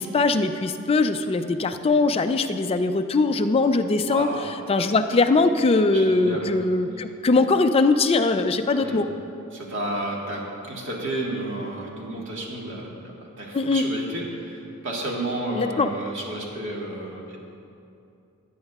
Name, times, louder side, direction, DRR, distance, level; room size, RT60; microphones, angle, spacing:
voice 1, 0.0-4.3 4.7-9.1 13.5-13.8 15.6-15.9, left 3 dB, 25° left, 8 dB, 0.4 m, -21 dB
voice 2, 4.0-4.6 5.9-6.5 8.7-9.0 9.5-17.4, right 1 dB, 60° right, -2 dB, 1.6 m, -31 dB
17.5 x 8.9 x 2.4 m, 2.6 s
head